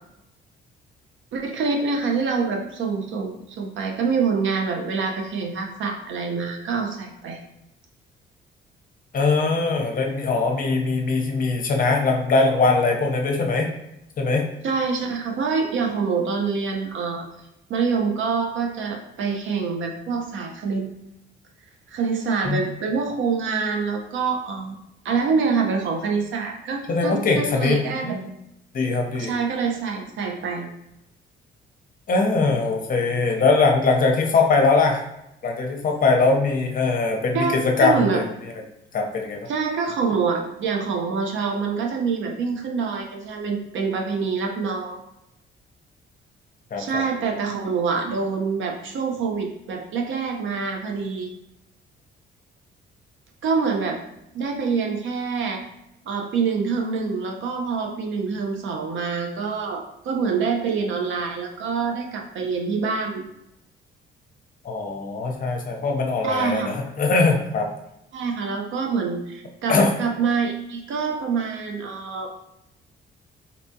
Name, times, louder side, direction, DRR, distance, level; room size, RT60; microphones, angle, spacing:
voice 1, 1.3-7.4 14.6-17.2 17.7-20.9 21.9-24.8 25.0-28.2 29.1-30.7 37.3-38.2 39.5-45.0 46.8-51.3 53.4-54.0 54.3-55.6 56.1-63.2 66.2-66.7 68.1-72.4, right 5 dB, 75° right, 2 dB, 0.6 m, -26 dB
voice 2, 9.1-13.7 14.2-14.5 22.5-22.6 26.9-28.2 28.7-29.3 32.1-35.0 35.4-38.3 38.9-39.5 46.7-47.0 64.6-67.7 69.7-69.9, left 3 dB, 45° left, 2 dB, 0.7 m, -21 dB
4.0 x 2.3 x 2.7 m, 0.84 s
cardioid pair, 90°, 20 cm